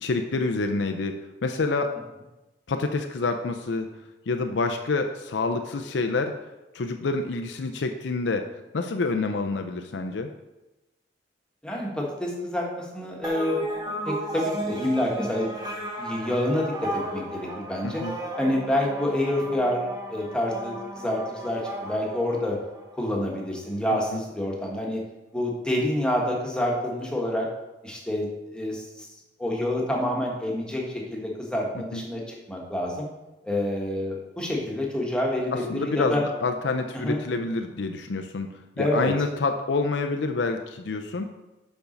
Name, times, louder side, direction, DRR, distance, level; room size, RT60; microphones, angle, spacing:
voice 1, 0.0-2.0 2.7-3.9 4.3-6.4 6.7-10.3 17.8-18.2 23.9-24.2 31.7-32.0 35.5-38.5 38.8-41.3, left 3 dB, 80° left, 6 dB, 0.5 m, -27 dB
voice 2, 11.6-13.7 14.0-15.5 16.0-18.0 18.4-22.6 23.0-25.0 25.3-27.5 27.8-29.1 29.4-33.1 33.4-36.2 36.9-37.2 38.8-39.1, left 1 dB, 5° left, -2 dB, 1.4 m, -28 dB
sound 1, 13.2-23.0, right 1 dB, 20° right, 1.2 m, -34 dB
7.0 x 5.4 x 5.2 m, 1.0 s
head